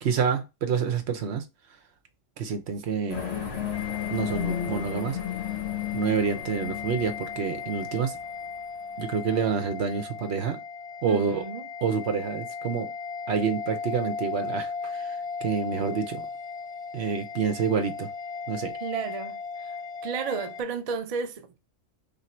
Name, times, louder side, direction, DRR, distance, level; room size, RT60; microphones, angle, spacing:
voice 1, 0.0-1.4 2.4-3.2 4.1-5.2 5.9-8.2 9.0-10.6 11.0-11.4 11.8-12.9 13.3-16.3 16.9-18.1 18.5-18.7, right 6 dB, 60° right, 0.9 m, -28 dB
sound 1, 3.1-8.2, left 9 dB, 65° left, 1.4 m, -33 dB
sound 2, 3.7-20.6, left 5 dB, 5° left, 0.6 m, -37 dB
voice 2, 11.0-11.7 18.8-19.8 20.0-21.6, right 6 dB, 75° right, 0.3 m, -33 dB
3.5 x 2.7 x 4.3 m
omnidirectional pair, 1.3 m